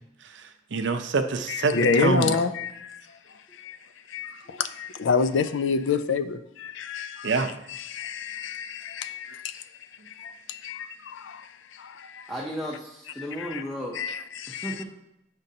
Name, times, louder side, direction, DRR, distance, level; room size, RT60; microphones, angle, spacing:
voice 1, 0.2-2.3 7.2-7.5, right 3 dB, 70° right, 0.5 m, -26 dB
voice 2, 1.5-3.2 3.6-3.8 4.1-9.6 10.1-12.3 13.4-13.6 13.9-14.8, left 5 dB, 80° left, 0.4 m, -29 dB
voice 3, 12.3-14.0 14.5-14.8, equal, ahead, 0.6 m, -34 dB
8.4 x 5.2 x 2.7 m
head